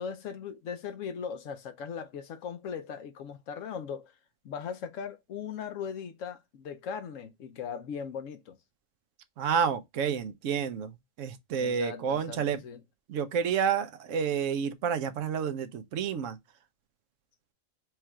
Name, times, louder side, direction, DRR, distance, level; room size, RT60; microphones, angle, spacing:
voice 1, 0.0-4.1 4.4-8.6 11.6-12.8, left 7 dB, 75° left, 1.1 m, -39 dB
voice 2, 9.4-10.9 11.2-12.6 13.1-16.4, right 7 dB, 80° right, 1.0 m, -29 dB
4.5 x 2.4 x 4.3 m
omnidirectional pair, 1.3 m